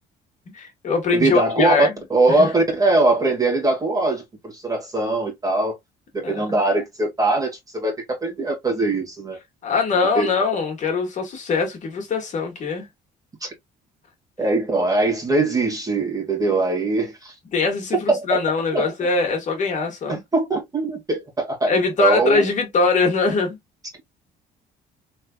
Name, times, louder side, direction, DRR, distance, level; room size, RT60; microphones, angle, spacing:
voice 1, 0.5-1.9 2.3-2.5 6.2-6.5 9.6-12.9 17.5-20.2 21.7-23.6, left 4 dB, 45° left, 1.6 m, -22 dB
voice 2, 1.1-1.7 2.1-5.7 6.1-9.4 10.1-10.3 13.4-13.5 14.4-17.3 18.1-18.2 18.7-18.9 20.1-21.7 22.0-22.4, right 2 dB, 20° right, 1.7 m, -21 dB
3.5 x 3.1 x 2.3 m
cardioid pair, 110°, 17 cm